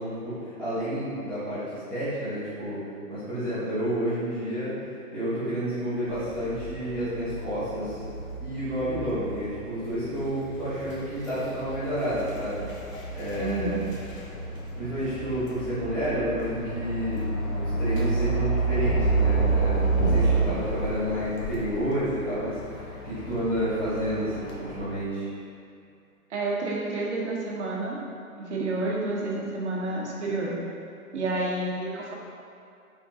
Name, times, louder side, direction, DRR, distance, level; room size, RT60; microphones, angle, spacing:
voice 1, 0.0-2.8 3.1-4.7 5.1-8.0 8.4-12.7 13.1-13.8 14.8-25.3, equal, 5° left, -17 dB, 0.8 m, -30 dB
sound 1, 6.1-24.8, right 3 dB, 60° left, 1.0 m, -30 dB
voice 2, 13.4-13.8 20.2-20.5 26.3-28.0 28.4-30.5 31.1-32.1, right 2 dB, 50° right, -3 dB, 0.8 m, -30 dB
4.7 x 3.6 x 2.7 m, 2.4 s
hypercardioid pair, 155°, 45 cm